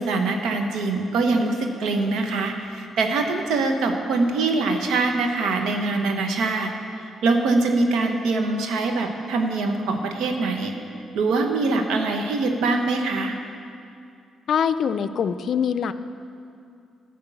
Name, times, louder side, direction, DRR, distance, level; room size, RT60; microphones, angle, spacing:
voice 1, 0.0-6.7 7.0-10.8 11.1-13.3, right 3 dB, 85° right, 4 dB, 1.0 m, -23 dB
voice 2, 14.5-15.9, left 7 dB, 65° left, 12 dB, 0.4 m, -23 dB
11.0 x 5.2 x 8.0 m, 2.4 s
cardioid pair, 70°, 0 cm